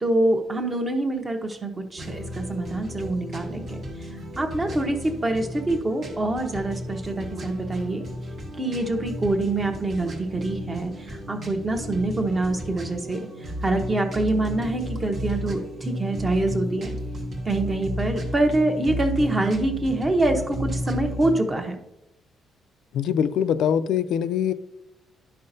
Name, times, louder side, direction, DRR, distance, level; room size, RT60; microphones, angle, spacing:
voice 1, 0.0-3.8 4.4-8.0 8.6-16.9 17.4-21.8, right 2 dB, 20° right, 0.9 m, -25 dB
sound 1, 2.0-21.4, equal, 35° right, 1.2 m, -33 dB
voice 2, 22.9-24.5, left 8 dB, 75° left, 0.4 m, -23 dB
11.5 x 5.5 x 2.7 m
cardioid pair, 165°, 0 cm